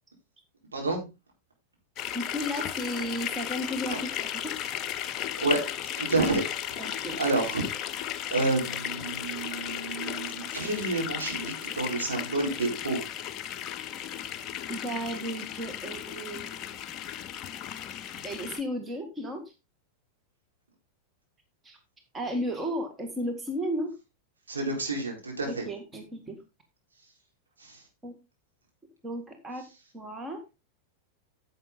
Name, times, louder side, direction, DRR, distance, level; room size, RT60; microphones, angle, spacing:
voice 1, 0.7-1.0 5.4-5.6 6.0-6.4 7.2-7.7 8.3-13.0 24.5-25.6 27.6-27.8, right 2 dB, 75° right, 0 dB, 4.2 m, -29 dB
sound 1, 2.0-18.6, left 10 dB, 35° left, 0.7 m, -35 dB
voice 2, 2.1-4.5 6.8-7.2 14.7-16.6 18.2-19.4 21.6-21.8 22.1-23.9 25.5-26.4 28.0-28.1 29.0-29.6 29.9-30.4, equal, 15° right, 5 dB, 2.0 m, -34 dB
10.0 x 7.9 x 3.8 m, 0.26 s
figure-of-eight pair, 90°, 0 cm